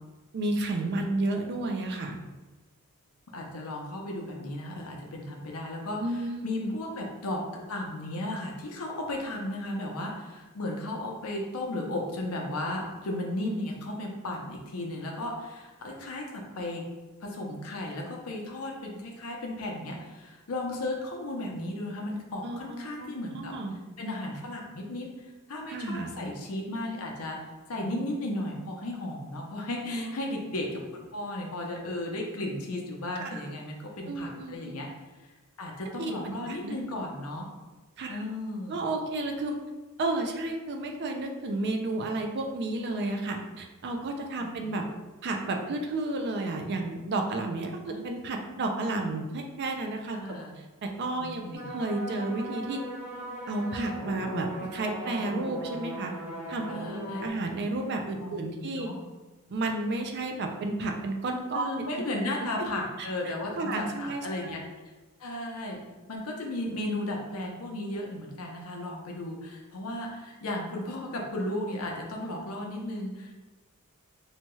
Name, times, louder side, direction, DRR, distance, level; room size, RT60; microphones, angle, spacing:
voice 1, 0.3-2.2 6.0-6.7 22.4-23.1 23.3-23.8 25.7-26.1 29.8-30.2 33.2-33.4 34.0-34.7 35.9-36.7 38.0-38.2 38.7-39.6 40.0-44.8 45.2-50.2 50.6-51.4 51.7-52.8 53.5-56.1 56.5-56.7 57.0-58.9 59.5-61.7 62.4-62.5 63.0-64.5, right 2 dB, 50° right, 3 dB, 0.4 m, -32 dB
voice 2, 3.3-16.8 17.2-23.5 24.0-25.1 25.5-27.4 27.7-34.9 35.6-37.5 38.1-38.8 44.4-44.8 47.8-48.1 50.1-50.5 51.2-51.8 56.7-57.3 58.2-59.0 61.5-64.6 65.2-65.8 66.1-73.3, left 1 dB, 75° left, 0 dB, 0.6 m, -35 dB
sound 1, 51.5-57.3, right 1 dB, 5° right, 0.7 m, -38 dB
2.8 x 2.2 x 3.0 m, 1.2 s
head